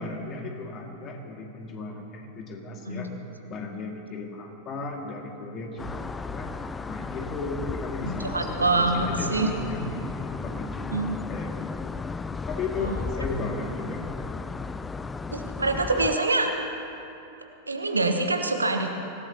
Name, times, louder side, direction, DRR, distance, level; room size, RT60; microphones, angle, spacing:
voice 1, 0.0-3.1 3.5-6.5 6.9-11.9 12.5-14.4, left 3 dB, 30° left, 1 dB, 2.1 m, -36 dB
sound 1, 5.8-16.1, left 4 dB, 15° left, 0.4 m, -34 dB
voice 2, 8.0-9.5 10.9-11.2 12.8-13.1 15.3-16.5 17.7-18.9, right 2 dB, 80° right, 4 dB, 1.3 m, -25 dB
25.5 x 16.5 x 2.9 m, 2.9 s
figure-of-eight pair, 90°, 0 cm